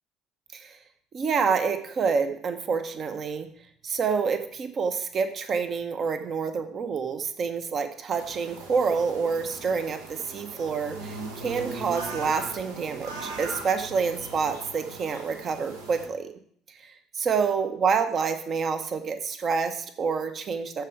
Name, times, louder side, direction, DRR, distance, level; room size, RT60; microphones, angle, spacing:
voice 1, 1.1-3.5 3.8-16.3 16.8-20.8, right 5 dB, 45° right, 9 dB, 1.1 m, -28 dB
sound 1, 8.1-16.1, right 3 dB, 75° right, 1.3 m, -39 dB
13.5 x 4.8 x 5.0 m, 0.62 s
figure-of-eight pair, 55°, 0 cm